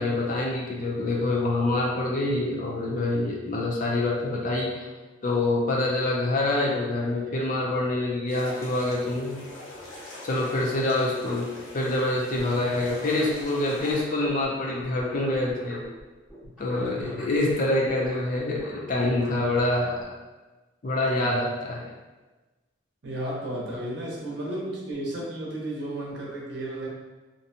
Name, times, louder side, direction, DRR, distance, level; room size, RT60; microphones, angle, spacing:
voice 1, 0.0-4.9 5.2-9.4 10.2-11.5 11.7-15.8 16.6-20.1 20.8-21.9, left 2 dB, 45° left, -2 dB, 0.4 m, -26 dB
sound 1, 8.3-14.0, left 1 dB, 80° left, 0.6 m, -42 dB
sound 2, 12.3-16.0 16.3-20.0, left 1 dB, ahead, 0.6 m, -46 dB
voice 2, 16.6-17.3 21.1-21.4 23.0-26.9, right 1 dB, 60° right, -4 dB, 0.7 m, -34 dB
2.6 x 2.1 x 2.7 m, 1.2 s
head